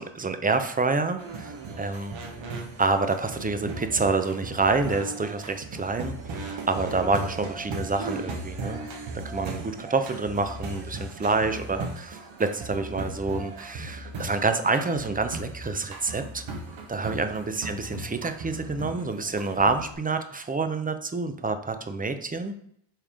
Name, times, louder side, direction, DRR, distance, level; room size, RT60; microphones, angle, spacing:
voice 1, 0.0-2.1 2.8-8.8 9.2-16.4 16.9-22.6, right 3 dB, 15° right, 8 dB, 0.7 m, -27 dB
sound 1, 1.2-19.9, right 2 dB, 65° right, 1.4 m, -37 dB
5.6 x 3.5 x 4.9 m, 0.68 s
cardioid pair, 75°, 49 cm